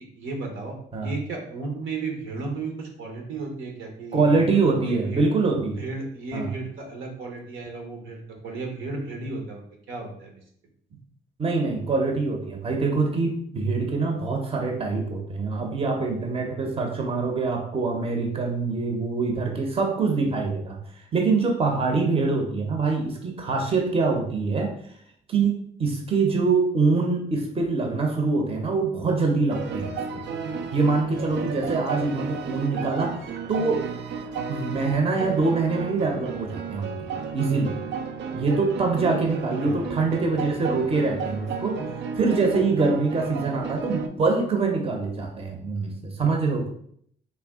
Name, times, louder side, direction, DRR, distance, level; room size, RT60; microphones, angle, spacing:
voice 1, 0.1-4.6 4.8-5.3 5.8-9.6 9.9-10.3 39.6-39.8, right 3 dB, 75° right, 2 dB, 0.9 m, -34 dB
voice 2, 4.1-5.8 6.3-6.5 11.4-20.8 21.1-24.7 25.3-30.2 30.7-33.2 33.5-33.8 34.5-37.8 38.3-41.8 42.2-46.7, right 4 dB, 30° right, 2 dB, 0.7 m, -24 dB
sound 1, 29.5-44.1, right 6 dB, 60° right, 0.4 m, -33 dB
3.4 x 2.3 x 3.5 m, 0.66 s
cardioid pair, 90°, 20 cm